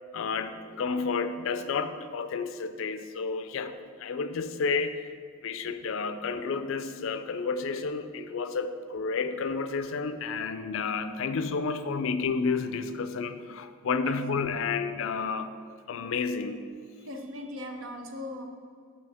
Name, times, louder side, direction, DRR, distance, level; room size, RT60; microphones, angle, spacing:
voice 1, 0.1-5.1 5.4-15.6 15.9-16.6, left 5 dB, 65° left, 10 dB, 0.4 m, -31 dB
voice 2, 17.0-18.4, left 1 dB, 65° right, 4 dB, 0.7 m, -39 dB
6.1 x 6.1 x 3.5 m, 2.1 s
head